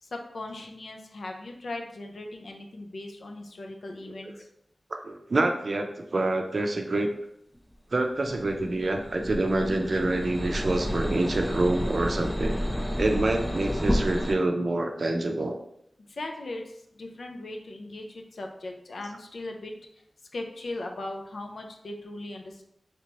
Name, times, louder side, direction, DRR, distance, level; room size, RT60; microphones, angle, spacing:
voice 1, 0.0-4.5 16.1-19.7 20.3-22.6, left 2 dB, 80° left, 3 dB, 0.4 m, -38 dB
voice 2, 4.9-5.9 6.1-7.1 7.9-12.6 13.0-15.6, right 2 dB, 60° right, 4 dB, 0.4 m, -26 dB
sound 1, 8.3-14.3, equal, 10° left, 0.3 m, -30 dB
3.3 x 2.8 x 3.0 m, 0.76 s
wide cardioid pair, 60°, 0 cm